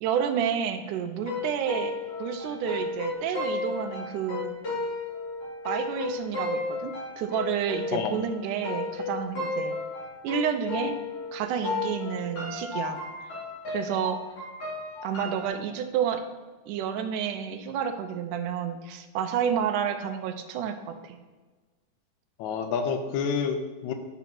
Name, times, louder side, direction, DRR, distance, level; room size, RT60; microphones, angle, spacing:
voice 1, 0.0-4.5 5.7-9.8 10.2-11.0 11.3-13.0 13.7-14.2 15.0-16.2 16.7-21.2, right 8 dB, 80° right, 8 dB, 2.1 m, -30 dB
sound 1, 1.2-11.4 11.6-15.5, left 3 dB, 60° left, 4.4 m, -33 dB
voice 2, 7.9-8.2 22.4-23.9, left 6 dB, 75° left, 6 dB, 1.9 m, -28 dB
10.5 x 4.1 x 5.8 m, 1.3 s
omnidirectional pair, 3.7 m